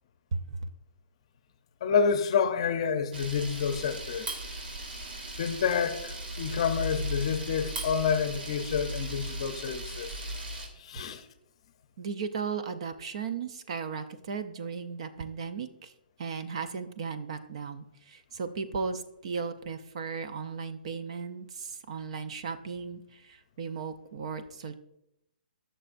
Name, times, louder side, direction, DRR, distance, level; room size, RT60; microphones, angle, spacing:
voice 1, 0.3-0.7 12.0-15.9 16.2-24.7, right 5 dB, 40° right, 0.6 m, -36 dB
voice 2, 1.8-4.3 5.4-10.1 10.8-11.2, left 6 dB, 35° left, 0.7 m, -28 dB
Camera, 3.1-10.7, right 1 dB, 85° right, 2.8 m, -37 dB
18.0 x 6.6 x 2.6 m
hypercardioid pair, 175°, 5 cm